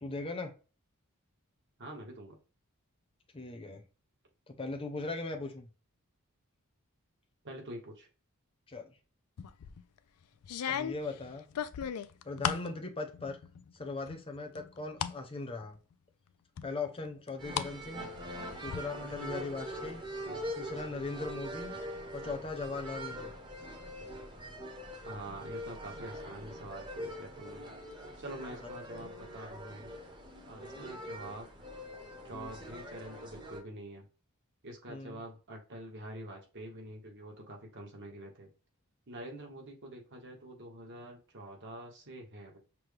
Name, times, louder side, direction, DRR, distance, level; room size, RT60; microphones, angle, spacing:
voice 1, 0.0-0.5 3.3-3.8 4.5-5.7 8.7-8.9 10.7-11.4 12.2-13.4 13.7-15.8 16.6-18.1 18.6-20.0 20.5-21.7 22.1-23.3 34.9-35.2, left 3 dB, 25° left, 0.7 m, -39 dB
voice 2, 1.8-2.4 7.4-8.1 25.0-27.6 28.2-29.9 30.5-31.5 32.2-34.0 34.6-38.5 39.1-42.6, right 1 dB, 55° right, 1.4 m, -46 dB
sound 1, 9.4-9.8 10.4-12.7 13.1-13.7 14.1-15.2 15.6-15.7 16.6-17.7 18.0-18.8, left 8 dB, 85° left, 0.4 m, -36 dB
sound 2, 17.4-33.6, equal, 20° right, 0.9 m, -43 dB
5.9 x 2.3 x 3.3 m
head